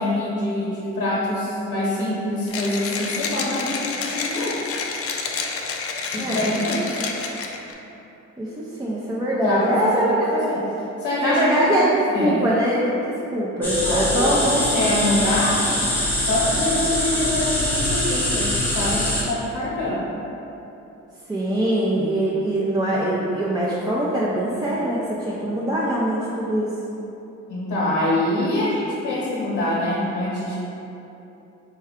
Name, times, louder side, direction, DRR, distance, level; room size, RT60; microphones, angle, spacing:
voice 1, 0.0-4.8 6.1-7.0 9.4-10.6 11.0-11.7 12.1-12.4 13.8-15.7 16.2-20.0 27.5-30.6, left 1 dB, 90° left, -8 dB, 0.9 m, -25 dB
Mechanisms, 2.5-7.7, left 4 dB, 50° left, 0.4 m, -29 dB
voice 2, 8.8-10.2 11.2-14.8 21.3-26.7, right 1 dB, 15° right, -7 dB, 0.4 m, -22 dB
sound 1, 13.6-19.2, left 1 dB, 5° left, 0.9 m, -23 dB
4.4 x 2.2 x 3.5 m, 3.0 s
cardioid pair, 90°, 30 cm